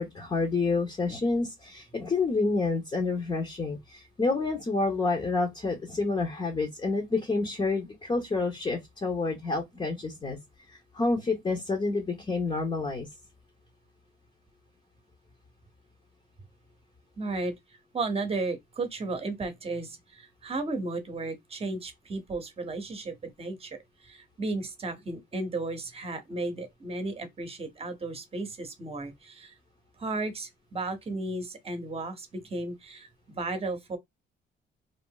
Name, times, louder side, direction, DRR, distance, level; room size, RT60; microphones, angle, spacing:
voice 1, 0.0-10.4 10.7-13.1, left 3 dB, 25° left, 0.8 m, -28 dB
voice 2, 17.2-17.5 17.9-23.8 24.0-29.5 30.0-34.0, right 2 dB, 30° right, 0.9 m, -34 dB
2.5 x 2.0 x 3.6 m
cardioid pair, 90°, 20 cm